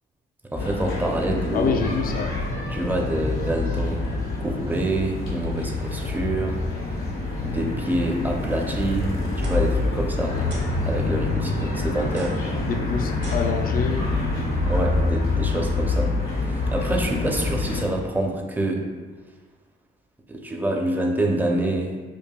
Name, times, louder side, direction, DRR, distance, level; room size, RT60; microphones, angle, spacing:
sound 1, 0.5-17.8, left 3 dB, 75° left, 1.1 m, -26 dB
voice 1, 0.5-1.7 2.7-6.6 7.4-10.5 10.9-12.4 14.7-16.2 16.5-18.9 20.3-22.0, right 1 dB, 10° right, 1 dB, 0.5 m, -26 dB
voice 2, 1.5-2.3 12.6-14.1, left 5 dB, 45° left, 6 dB, 0.4 m, -26 dB
sound 2, 9.3-9.5 10.4-10.7 12.0-14.1, right 1 dB, 60° right, 1.1 m, -42 dB
4.6 x 2.6 x 2.2 m, 1.4 s
cardioid pair, 90°, 20 cm